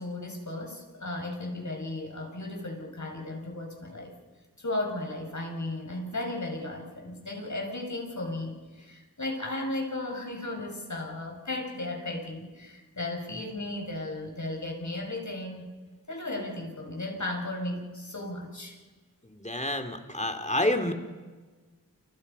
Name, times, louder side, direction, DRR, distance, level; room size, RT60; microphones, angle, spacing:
voice 1, 0.0-4.2 4.6-15.7 16.1-18.8, left 2 dB, 55° left, 1 dB, 6.7 m, -35 dB
voice 2, 19.2-20.9, left 1 dB, 20° left, 6 dB, 3.1 m, -28 dB
29.5 x 29.0 x 5.7 m, 1.3 s
wide cardioid pair, 45°, 34 cm